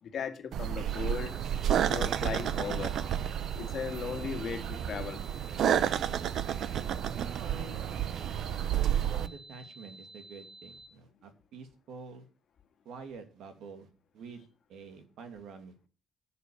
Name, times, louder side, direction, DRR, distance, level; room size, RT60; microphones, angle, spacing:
voice 1, 0.0-1.4 1.9-3.0 3.6-5.2, left 7 dB, 55° left, 2.0 m, -37 dB
sound 1, 0.5-9.3, right 10 dB, 70° right, 0.8 m, -31 dB
sound 2, 0.9-10.9, right 2 dB, 45° right, 2.6 m, -51 dB
voice 2, 7.0-7.8 8.7-12.3 12.8-13.9 14.1-15.9, right 4 dB, 85° right, 2.5 m, -47 dB
11.5 x 6.8 x 6.9 m
cardioid pair, 150°, 0 cm